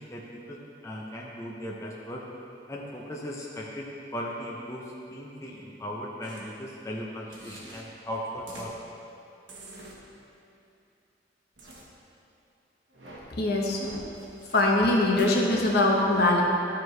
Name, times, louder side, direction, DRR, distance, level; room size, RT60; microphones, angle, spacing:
voice 1, 0.0-2.2 2.7-8.7, equal, 15° left, -3 dB, 0.6 m, -38 dB
sound 1, 6.2-6.4 7.3-7.8 8.5-8.7 9.5-9.9 11.6-11.8 12.9-13.2 13.8-14.6 15.2-15.3, right 2 dB, 90° right, 1.3 m, -45 dB
voice 2, 13.4-13.8 14.5-16.4, left 2 dB, 60° left, -1 dB, 1.0 m, -22 dB
12.5 x 4.6 x 3.2 m, 2.7 s
head